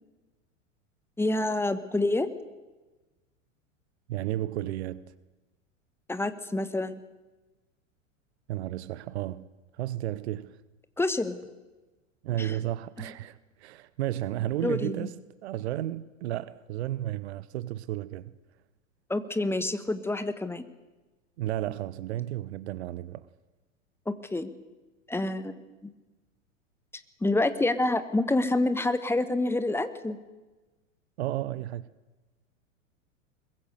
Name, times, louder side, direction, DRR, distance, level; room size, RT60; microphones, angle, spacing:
voice 1, 1.2-2.3 6.1-7.0 11.0-11.4 12.4-12.6 14.6-14.9 19.1-20.7 24.1-24.5 25.1-25.9 27.2-30.2, left 2 dB, 5° left, 1.2 m, -27 dB
voice 2, 4.1-5.1 8.5-9.5 9.7-10.6 12.2-18.3 21.4-23.3 31.2-31.9, right 14 dB, 55° right, 0.9 m, -33 dB
22.0 x 21.5 x 6.6 m
figure-of-eight pair, 90°, 39 cm